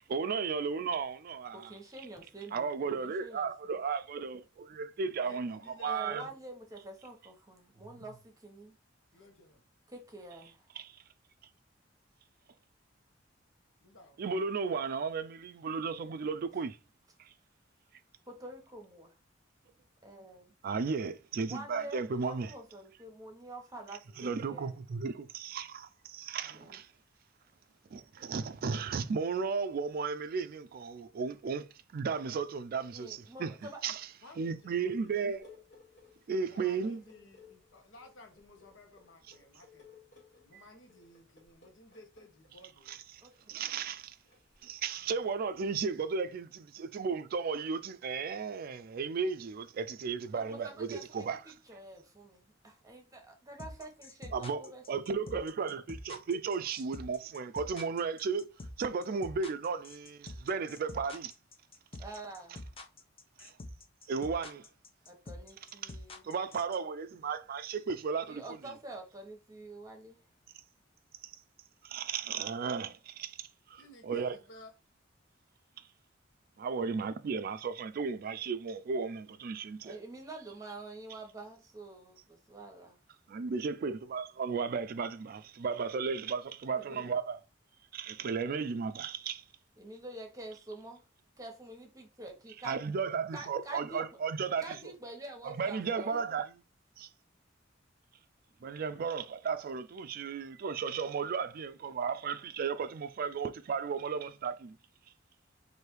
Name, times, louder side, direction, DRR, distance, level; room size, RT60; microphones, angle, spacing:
voice 1, 0.0-1.7 2.5-6.3 10.8-10.9 14.2-16.8 20.6-22.5 24.2-26.9 27.9-31.6 31.9-33.5 33.8-34.0 34.4-35.4 36.3-37.0 40.5-40.6 42.9-43.0 43.5-44.2 44.6-51.4 54.3-58.5 58.8-61.3 63.4-63.5 64.1-64.6 65.8-66.0 66.2-68.4 71.8-74.4 76.6-80.0 83.3-87.4 87.9-89.4 92.6-94.7 95.4-96.5 97.0-97.1 98.6-104.8, right 5 dB, 50° right, 0.4 m, -34 dB
voice 2, 1.5-3.8 5.8-8.7 9.9-10.6 18.3-19.2 20.0-20.6 21.5-24.8 26.5-26.8 32.9-33.9 43.2-43.6 50.3-54.8 62.0-62.6 65.1-66.3 68.3-70.2 79.8-83.0 89.8-91.0 91.4-92.9 93.3-94.0 94.6-96.3, right 2 dB, 20° right, 1.0 m, -47 dB
voice 3, 5.2-6.3 9.1-9.6 13.8-14.2 26.4-26.8 34.2-35.1 36.4-39.9 40.4-43.0 45.0-45.2 73.7-74.7 86.7-87.2 98.9-99.4, left 1 dB, 75° left, 1.1 m, -56 dB
sound 1, 34.9-46.0, left 5 dB, 60° left, 1.8 m, -61 dB
sound 2, 53.6-66.8, left 2 dB, 30° left, 0.6 m, -46 dB
3.3 x 2.7 x 4.5 m
head